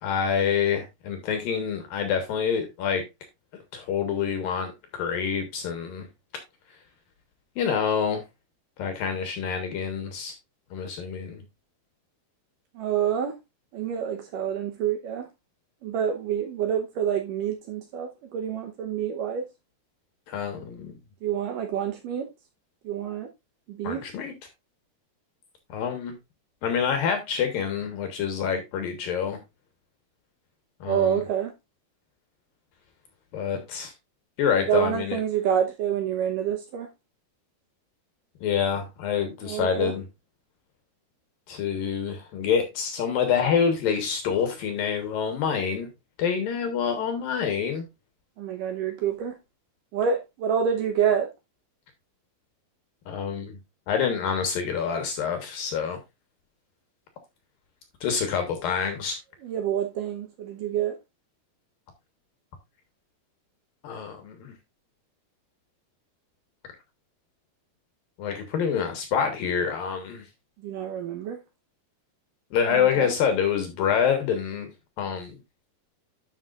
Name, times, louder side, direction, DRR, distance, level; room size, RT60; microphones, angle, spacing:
voice 1, 0.0-3.0 3.7-6.1 7.6-8.2 8.8-10.3 10.7-11.4 20.3-21.0 23.8-24.3 25.7-26.2 26.6-29.4 30.8-31.2 33.3-33.9 34.4-35.2 38.4-40.0 41.5-45.9 46.2-47.9 53.1-53.6 53.9-56.0 58.0-59.2 63.8-64.5 68.2-70.3 72.5-74.7 75.0-75.4, left 7 dB, 65° left, 2.5 m, -27 dB
voice 2, 12.7-13.4 13.7-15.3 15.8-19.5 21.2-22.3 22.8-23.3 23.7-24.0 30.8-31.5 34.7-36.9 39.4-39.9 48.4-49.4 49.9-51.3 59.4-61.0 70.6-71.4 72.7-73.2, right 8 dB, 80° right, 1.9 m, -27 dB
11.5 x 6.0 x 2.4 m
omnidirectional pair, 5.1 m